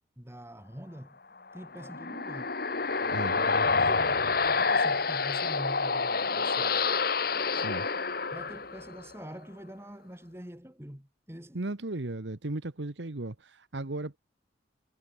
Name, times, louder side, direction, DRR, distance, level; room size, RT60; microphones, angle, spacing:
voice 1, 0.2-1.2 1.5-2.6 3.8-6.9 8.3-11.6, equal, 15° right, 2.8 m, -45 dB
sound 1, 1.6-9.1, left 4 dB, 55° left, 2.0 m, -28 dB
voice 2, 7.5-7.9 11.5-14.2, right 2 dB, 75° right, 1.3 m, -36 dB
head